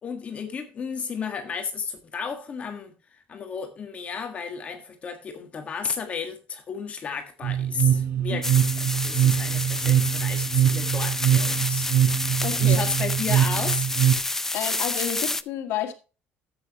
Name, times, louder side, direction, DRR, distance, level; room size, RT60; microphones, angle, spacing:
voice 1, 0.0-2.9 3.3-8.5 8.8-11.9 12.5-13.9, left 6 dB, 30° left, 1.5 m, -33 dB
sound 1, 7.4-14.2, right 11 dB, 50° right, 5.0 m, -23 dB
sound 2, 8.4-15.4, left 2 dB, 10° left, 0.4 m, -29 dB
voice 2, 12.4-12.8 14.5-15.9, left 11 dB, 70° left, 1.9 m, -30 dB
13.0 x 8.2 x 2.9 m
cardioid pair, 145°, 4 cm